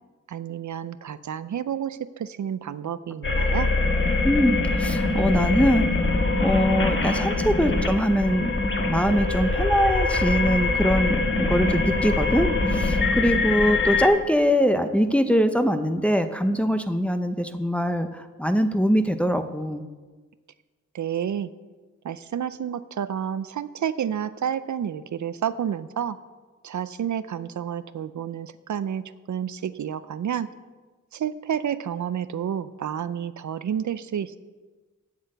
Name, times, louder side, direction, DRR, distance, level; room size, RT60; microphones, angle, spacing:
voice 1, 0.3-3.7 20.9-21.5 22.0-26.2 26.6-30.5 31.1-34.4, right 9 dB, 70° right, 14 dB, 0.5 m, -30 dB
sound 1, 3.2-14.1, left 3 dB, 40° left, 1.5 m, -23 dB
voice 2, 4.2-6.1 6.4-8.5 8.8-19.8, equal, 5° left, 7 dB, 0.6 m, -23 dB
8.6 x 7.9 x 7.7 m, 1.3 s
wide cardioid pair, 125°, 30 cm